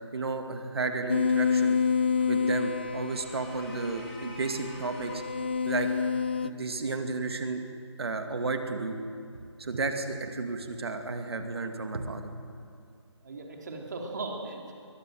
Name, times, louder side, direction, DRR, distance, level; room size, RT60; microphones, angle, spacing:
voice 1, 0.1-1.8 2.3-5.2 5.6-5.9 6.4-7.6 8.0-9.0 9.6-12.3, right 3 dB, 55° right, 5 dB, 2.4 m, -32 dB
sound 1, 1.1-6.5, left 6 dB, 20° left, 0.5 m, -28 dB
sound 2, 3.0-5.3, equal, ahead, 2.6 m, -49 dB
voice 2, 13.2-14.7, right 3 dB, 40° right, 1 dB, 3.7 m, -38 dB
22.5 x 21.0 x 7.9 m, 2.4 s
hypercardioid pair, 170°, 15 cm